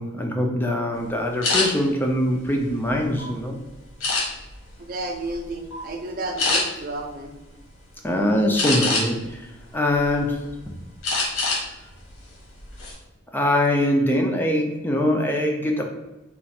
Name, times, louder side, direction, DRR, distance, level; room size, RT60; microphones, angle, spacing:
voice 1, 0.0-3.6 8.0-10.8 13.3-15.8, left 1 dB, 10° left, 2 dB, 0.4 m, -23 dB
sound 1, 1.4-1.7 2.3-3.3 4.0-4.6 5.1-5.4 5.7-5.9 6.4-6.6 8.6-9.3 9.8-10.5 11.0-11.6 12.0-12.2 12.6-12.9, left 3 dB, 85° left, 1.4 m, -24 dB
voice 2, 4.8-7.3, right 2 dB, 40° right, 3 dB, 0.5 m, -31 dB
4.1 x 2.4 x 4.2 m, 0.99 s
head